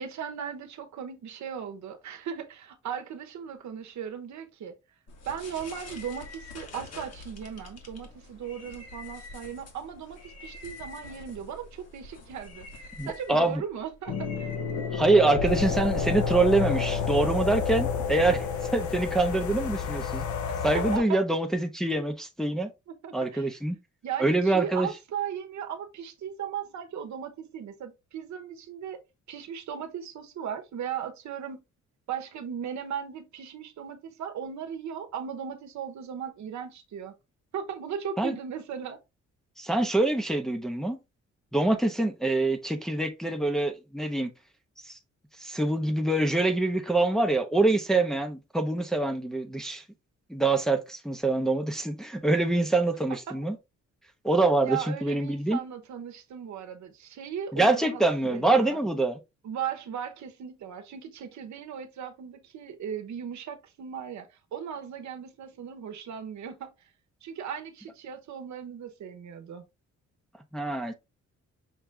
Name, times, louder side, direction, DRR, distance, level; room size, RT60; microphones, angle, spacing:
voice 1, 0.0-4.8 5.3-14.5 20.4-21.2 22.9-23.5 24.0-29.0 29.3-31.6 32.1-37.2 37.5-39.0 53.3-53.4 54.6-58.8 59.4-66.7 67.2-69.6, right 8 dB, 70° right, 0.9 m, -37 dB
sound 1, 5.1-15.7, left 3 dB, 55° left, 1.4 m, -46 dB
voice 2, 13.0-13.6 14.9-18.5 18.7-20.3 20.6-22.7 23.1-23.8 24.2-24.9 38.2-38.4 39.6-41.0 41.5-44.3 44.8-45.0 45.4-49.8 50.3-53.6 54.2-55.6 57.5-59.2 70.5-70.9, right 2 dB, ahead, 0.6 m, -25 dB
sound 2, 14.1-21.0, left 6 dB, 80° left, 0.9 m, -29 dB
6.0 x 2.6 x 3.3 m
cardioid pair, 145°, 30 cm